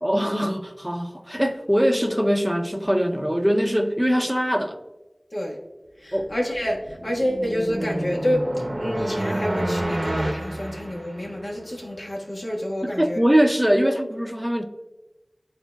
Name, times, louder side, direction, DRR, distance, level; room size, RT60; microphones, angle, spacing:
voice 1, 0.0-4.8 6.1-6.3 12.8-14.6, equal, 5° right, 0.6 m, -22 dB
voice 2, 6.0-13.2 13.8-14.0, equal, 75° left, 1.4 m, -28 dB
sound 1, 6.3-11.5, right 1 dB, 50° right, 0.6 m, -29 dB
11.0 x 3.9 x 2.3 m
wide cardioid pair, 45°, 0 cm